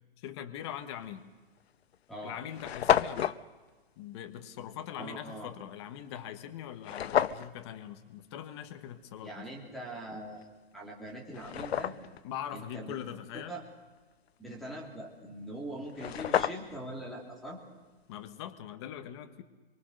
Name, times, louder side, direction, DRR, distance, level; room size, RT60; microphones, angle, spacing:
voice 1, 0.2-1.2 2.2-3.4 4.0-9.4 12.2-13.6 18.1-19.4, left 10 dB, 25° left, 8 dB, 1.2 m, -42 dB
sound 1, 1.0-1.2 1.9-2.0 2.2-2.3 2.5-3.4 6.8-7.5 10.4-10.5 11.1-12.2 15.6-15.7 15.9-16.9, left 9 dB, 80° left, 1.0 m, -30 dB
voice 2, 4.9-5.5 9.2-10.4 10.7-11.9 12.5-12.9 13.3-13.6 14.4-17.6, right 1 dB, ahead, -3 dB, 3.3 m, -42 dB
26.5 x 24.0 x 6.5 m, 1.3 s
hypercardioid pair, 175°, 31 cm